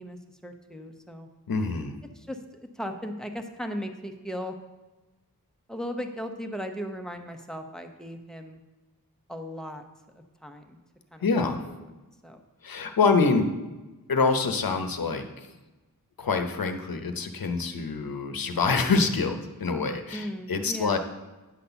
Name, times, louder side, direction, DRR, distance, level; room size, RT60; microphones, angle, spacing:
voice 1, 0.0-1.3 2.1-2.4 2.7-4.6 5.7-8.6 9.3-9.8 10.1-10.8 11.1-11.3 11.7-11.8 12.2-12.4 20.1-21.0, equal, ahead, 5 dB, 0.8 m, -37 dB
voice 2, 1.5-2.0 11.2-11.6 12.6-13.5 14.1-15.5 16.2-21.0, left 4 dB, 80° left, 7 dB, 0.8 m, -26 dB
9.6 x 4.1 x 6.9 m, 1.1 s
wide cardioid pair, 80°, 35 cm